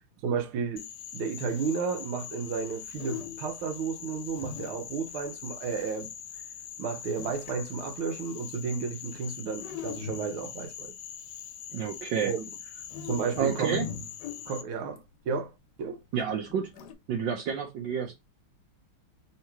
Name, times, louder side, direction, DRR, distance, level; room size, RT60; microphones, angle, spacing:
voice 1, 0.2-0.9 1.1-6.1 6.8-10.9 12.2-12.4 13.0-13.8 14.5-15.5 15.8-16.0, right 5 dB, 90° right, 1.7 m, -32 dB
Frog, 0.8-14.6, left 9 dB, 85° left, 0.8 m, -43 dB
sound 1, 3.0-3.6 4.4-5.3 7.2-7.7 9.6-10.7 12.8-15.0 16.5-16.9, left 8 dB, 65° left, 1.2 m, -40 dB
voice 2, 11.7-12.3 13.4-13.9 16.1-16.7 17.1-18.1, right 7 dB, 70° right, 1.3 m, -30 dB
3.7 x 2.9 x 4.4 m
omnidirectional pair, 2.2 m